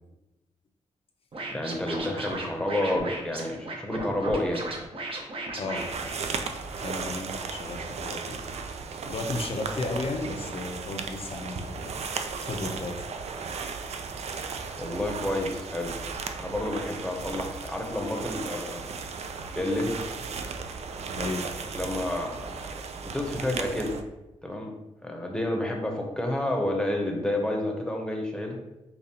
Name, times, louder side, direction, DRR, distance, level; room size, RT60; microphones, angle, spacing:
Scratching (performance technique), 1.3-6.8, right 2 dB, 50° right, 0.8 m, -36 dB
voice 1, 1.5-4.7 14.8-15.9 16.4-18.8 19.5-20.0 21.7-23.9 24.4-24.7 25.0-28.6, left 1 dB, 5° left, 1 dB, 0.8 m, -30 dB
voice 2, 5.6-5.9 6.7-8.4 9.0-11.9 12.4-13.1 21.1-21.5, left 2 dB, 55° left, 4 dB, 0.6 m, -34 dB
sound 1, 5.7-24.0, right 5 dB, 65° right, 0.4 m, -36 dB
5.2 x 2.3 x 2.8 m, 0.98 s
cardioid pair, 75°, 12 cm